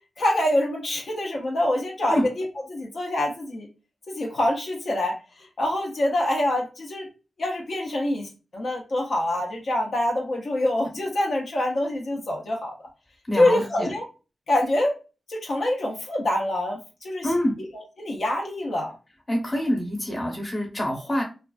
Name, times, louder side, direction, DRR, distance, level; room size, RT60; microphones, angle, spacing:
voice 1, 0.2-3.7 4.1-5.2 5.6-7.1 7.4-12.7 13.4-14.1 14.5-14.9 15.3-17.3 17.7-18.9, left 1 dB, 65° left, -1 dB, 0.6 m, -25 dB
voice 2, 13.3-13.9 17.2-17.5 19.3-21.2, equal, 25° left, 0 dB, 0.9 m, -26 dB
2.3 x 2.3 x 2.3 m, 0.33 s
cardioid pair, 75°, 0 cm